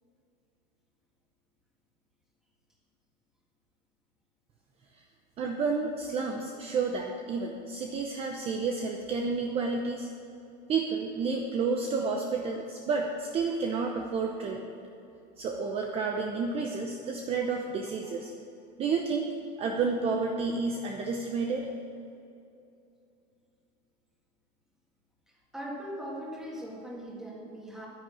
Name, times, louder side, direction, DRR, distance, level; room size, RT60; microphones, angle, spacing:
voice 1, 5.4-10.1 10.7-14.8 15.4-18.3 18.8-19.3 19.6-21.7, right 4 dB, 30° right, 2 dB, 0.8 m, -30 dB
voice 2, 25.5-27.9, equal, ahead, -3 dB, 2.1 m, -40 dB
10.5 x 10.0 x 7.7 m, 2.7 s
cardioid pair, 165°, 21 cm